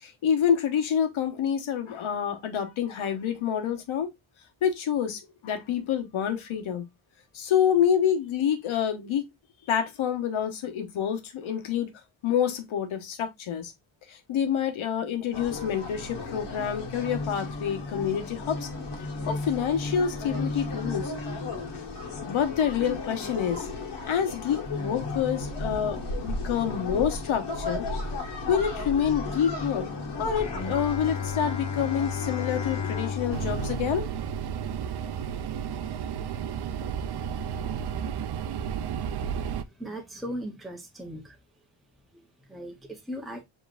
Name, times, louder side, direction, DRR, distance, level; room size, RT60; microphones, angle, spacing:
voice 1, 0.0-4.1 4.6-6.8 7.3-9.2 9.7-11.9 12.2-13.7 14.1-18.7 19.3-21.1 22.2-23.7 24.0-27.9 28.5-29.9 30.2-34.1, left 8 dB, 80° left, 1.2 m, -27 dB
sound 1, 15.3-33.8, left 2 dB, 55° left, 1.5 m, -34 dB
Bowed string instrument, 30.4-35.6, left 6 dB, 35° left, 0.9 m, -34 dB
sound 2, 33.3-39.6, right 8 dB, 55° right, 0.5 m, -32 dB
voice 2, 39.6-41.4 42.1-43.4, equal, ahead, 0.7 m, -39 dB
7.0 x 3.1 x 2.4 m
wide cardioid pair, 175°, 48 cm